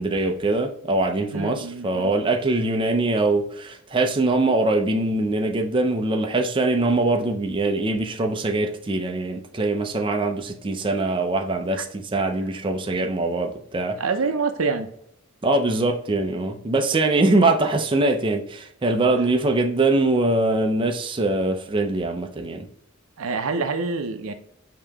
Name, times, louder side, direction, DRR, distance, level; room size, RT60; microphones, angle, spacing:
voice 1, 0.0-14.0 15.4-22.7, right 2 dB, 25° right, 0.5 m, -22 dB
voice 2, 1.3-2.1 11.8-11.9 14.0-14.9 23.2-24.3, right 4 dB, 85° right, 0.6 m, -26 dB
5.4 x 2.9 x 3.4 m
head